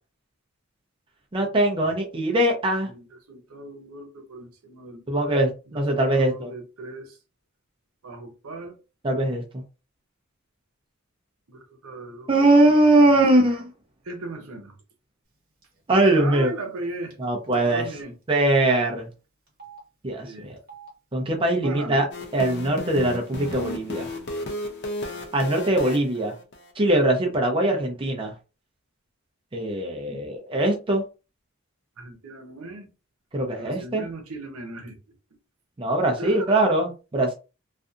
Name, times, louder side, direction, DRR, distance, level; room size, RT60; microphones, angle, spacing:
voice 1, 1.3-2.9 5.1-6.5 9.0-9.6 12.3-13.7 15.9-16.5 17.2-17.8 18.3-19.1 20.0-20.5 21.1-22.1 22.3-24.1 25.3-26.3 26.8-28.3 29.5-31.0 33.3-34.1 35.8-37.3, right 1 dB, 25° right, 0.5 m, -21 dB
voice 2, 2.9-5.4 5.7-7.2 8.0-8.8 11.5-12.5 13.0-13.2 14.0-14.7 16.2-17.2 17.5-18.1 20.2-20.5 21.5-22.1 30.1-30.2 32.0-32.9 33.5-35.0 36.2-36.8, right 2 dB, 80° right, 0.8 m, -38 dB
Telephone, 15.6-15.8 16.1-16.2 17.1-17.2 17.5-17.6 18.4-18.7 19.5-19.8 20.6-20.9 21.5-21.8 22.6-22.8 23.0-23.7, right 6 dB, 45° right, 1.1 m, -46 dB
sound 1, 22.1-26.7, left 1 dB, 55° left, 0.5 m, -34 dB
2.6 x 2.4 x 2.4 m
head